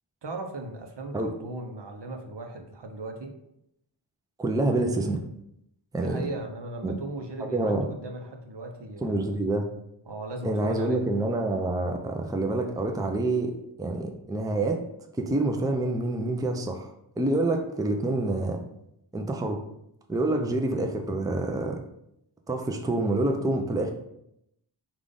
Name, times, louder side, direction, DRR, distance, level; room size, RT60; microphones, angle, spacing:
voice 1, 0.2-3.3 6.0-9.3 10.1-11.0, right 2 dB, 65° right, 4 dB, 0.8 m, -37 dB
voice 2, 4.4-5.2 5.9-6.2 6.8-6.9 7.4-7.9 9.0-9.7 10.4-13.5 13.8-14.8 15.2-18.6 19.1-19.6 20.1-21.8 22.5-23.9, right 2 dB, 10° right, 4 dB, 0.4 m, -27 dB
5.0 x 2.5 x 3.8 m, 0.79 s
wide cardioid pair, 60°, 45 cm